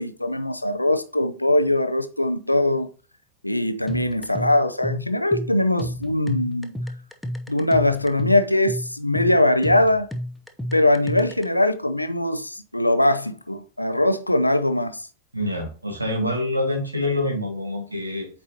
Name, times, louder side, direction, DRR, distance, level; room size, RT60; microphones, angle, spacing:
voice 1, 0.0-2.9 3.4-6.7 7.5-10.1 10.7-15.1, left 1 dB, 85° left, 0.5 m, -21 dB
sound 1, 3.9-11.5, equal, ahead, 0.7 m, -32 dB
voice 2, 15.3-18.3, left 1 dB, 85° right, 1.7 m, -26 dB
8.3 x 4.4 x 2.9 m
figure-of-eight pair, 90°, 0 cm